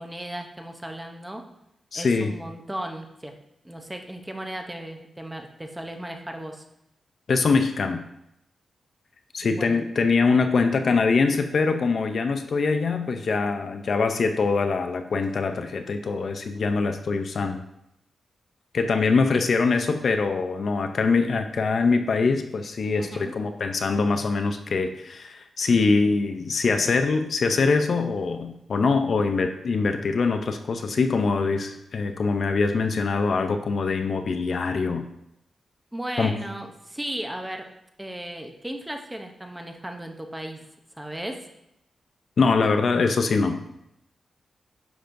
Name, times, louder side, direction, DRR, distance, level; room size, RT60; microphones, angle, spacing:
voice 1, 0.0-1.4 1.9-3.3 3.6-6.6 9.5-9.8 19.3-19.4 23.0-23.3 35.9-37.7 38.0-40.6 41.0-41.5, right 1 dB, 10° right, 4 dB, 0.7 m, -35 dB
voice 2, 1.9-2.3 7.3-8.0 9.3-17.6 18.7-35.0 36.2-36.4 42.4-43.6, left 4 dB, 50° left, 7 dB, 0.5 m, -23 dB
10.0 x 6.0 x 2.6 m, 0.81 s
wide cardioid pair, 165°, 0 cm